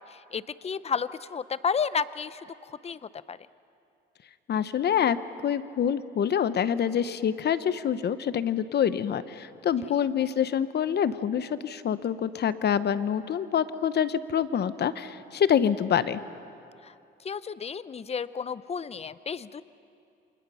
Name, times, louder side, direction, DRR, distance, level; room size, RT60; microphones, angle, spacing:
voice 1, 0.3-2.4 2.8-3.0 3.3-3.4 9.8-9.9 17.2-19.6, left 6 dB, 30° left, 16 dB, 0.7 m, -31 dB
voice 2, 4.5-5.2 5.4-16.2, left 8 dB, 55° left, 13 dB, 0.9 m, -26 dB
29.5 x 26.0 x 5.7 m, 2.6 s
cardioid pair, 90°, 20 cm